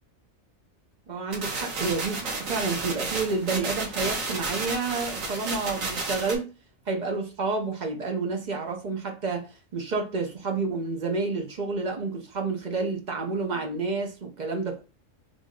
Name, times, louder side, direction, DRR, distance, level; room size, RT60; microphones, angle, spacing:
voice 1, 1.1-6.5 6.9-9.5 9.7-14.8, right 4 dB, 45° right, 0.7 m, -29 dB
sound 1, 1.3-6.3, right 3 dB, 90° right, 1.3 m, -32 dB
3.5 x 2.6 x 3.6 m
omnidirectional pair, 1.3 m